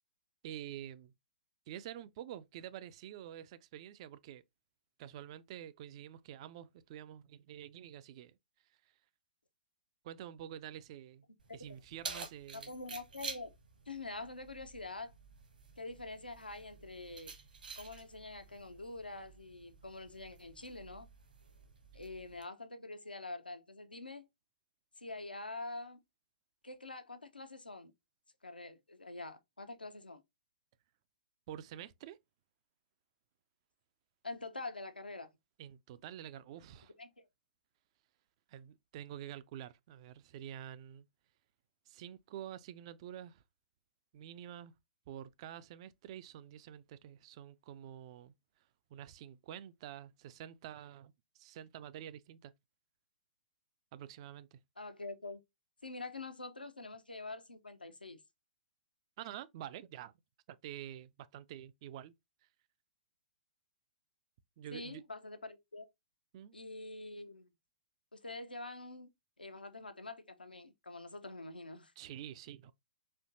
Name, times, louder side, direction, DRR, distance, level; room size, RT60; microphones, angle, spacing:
voice 1, 0.4-1.1 1.7-4.4 5.0-8.4 10.0-11.2 11.5-12.7 31.5-32.2 35.6-36.9 38.5-41.1 41.9-43.4 44.1-44.7 45.1-48.3 48.9-52.5 53.9-54.6 59.2-60.1 60.5-62.1 64.6-65.0 66.3-66.6 72.0-72.7, right 11 dB, 40° right, 0.3 m, -48 dB
Keys jangling, 11.4-22.4, right 5 dB, 65° right, 1.1 m, -50 dB
voice 2, 12.5-13.5 13.9-15.1 15.8-17.3 17.8-21.1 21.9-24.3 25.0-26.0 26.6-27.9 28.4-30.2 34.2-35.3 37.0-37.3 54.8-55.4 55.8-58.2 64.7-65.9 66.5-67.5 68.1-69.1 69.4-71.9, left 2 dB, 80° left, 0.6 m, -45 dB
4.4 x 2.8 x 2.5 m
figure-of-eight pair, 115°, 5 cm